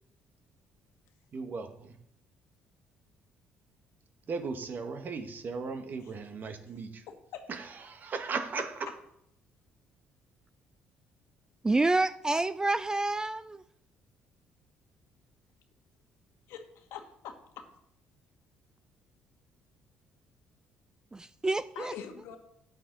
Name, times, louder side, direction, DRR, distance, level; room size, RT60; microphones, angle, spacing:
voice 1, 1.3-1.9 4.3-7.0 7.9-8.7, right 4 dB, 45° right, 8 dB, 1.2 m, -36 dB
voice 2, 7.1-7.4 16.5-17.7 21.7-22.4, left 8 dB, 80° left, 5 dB, 1.4 m, -44 dB
voice 3, 11.6-13.6 21.1-21.9, right 2 dB, 15° right, 14 dB, 0.3 m, -28 dB
9.2 x 8.4 x 3.9 m, 0.74 s
supercardioid pair, 80°, 4 cm